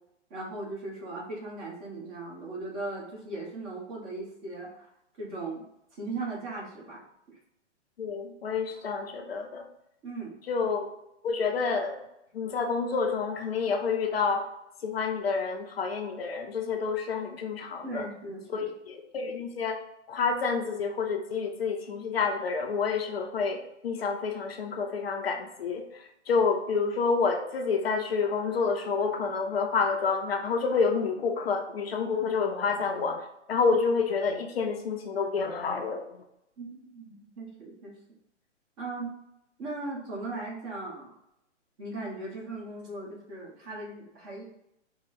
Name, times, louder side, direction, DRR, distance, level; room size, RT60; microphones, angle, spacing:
voice 1, 0.3-4.9 5.2-5.6 5.9-7.0 10.0-10.3 17.8-18.7 36.6-37.9 38.8-39.1 39.6-41.1 41.8-44.4, right 2 dB, 30° right, -4 dB, 1.5 m, -38 dB
voice 2, 8.0-9.6 10.5-10.9 11.2-12.0 12.3-14.5 14.8-18.0 18.5-19.8 20.1-25.8 26.3-33.2 33.5-36.0, left 5 dB, 55° left, 3 dB, 0.7 m, -28 dB
4.7 x 2.3 x 4.1 m, 0.82 s
figure-of-eight pair, 125°, 36 cm